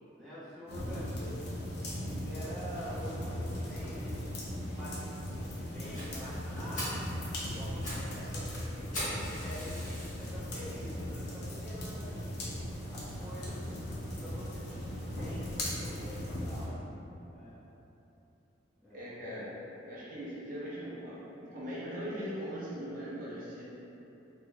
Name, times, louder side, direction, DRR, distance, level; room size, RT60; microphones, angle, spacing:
voice 1, 0.1-1.5 2.0-4.3 4.6-7.1 7.4-8.9 9.2-12.4 12.9-13.7 14.2-16.8 17.3-17.6 18.8-19.1, equal, ahead, -13 dB, 0.7 m, -46 dB
sound 1, 0.7-16.7, equal, 60° left, 0.6 m, -38 dB
Fire, 5.9-6.1 6.5-6.6 6.7-7.0 7.6-8.1 8.3-8.4 8.9-10.3 10.9-11.0 11.5-11.6 11.9-12.0 12.3-12.4, left 1 dB, 40° left, 1.1 m, -39 dB
voice 2, 18.9-19.5 19.8-23.6, equal, 45° right, -9 dB, 0.6 m, -40 dB
3.5 x 2.6 x 2.2 m, 3.0 s
head